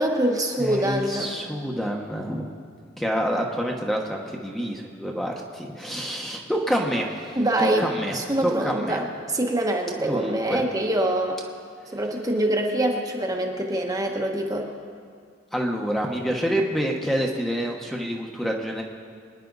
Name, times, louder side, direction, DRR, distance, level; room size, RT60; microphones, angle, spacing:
voice 1, 0.0-1.4 7.3-7.9 8.1-11.4 11.9-14.7, right 1 dB, 20° right, 1 dB, 1.1 m, -24 dB
voice 2, 0.6-2.5 3.0-8.1 8.4-9.0 10.1-10.6 15.5-18.8, equal, ahead, 0 dB, 1.1 m, -27 dB
24.5 x 10.0 x 4.0 m, 2.2 s
head